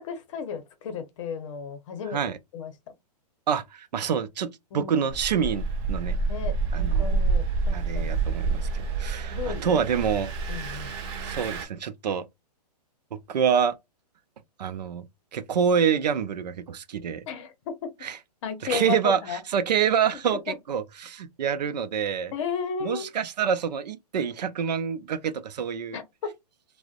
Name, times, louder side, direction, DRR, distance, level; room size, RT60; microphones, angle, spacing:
voice 1, 0.0-2.2 2.5-2.7 4.7-4.9 6.3-8.2 9.3-9.8 10.5-11.0 17.3-17.9 18.4-19.4 20.5-20.6 22.3-23.1 25.9-26.0, left 6 dB, 50° left, 0.7 m, -34 dB
voice 2, 3.5-4.5 4.7-6.2 6.7-7.1 7.7-10.3 10.6-12.3 13.1-13.8 14.6-15.0 15.3-17.2 18.0-18.2 18.6-22.3 22.8-26.0, right 7 dB, 85° right, 0.5 m, -27 dB
Engine, 5.1-11.6, right 4 dB, 40° right, 0.5 m, -28 dB
2.5 x 2.1 x 2.3 m
hypercardioid pair, 145°, 21 cm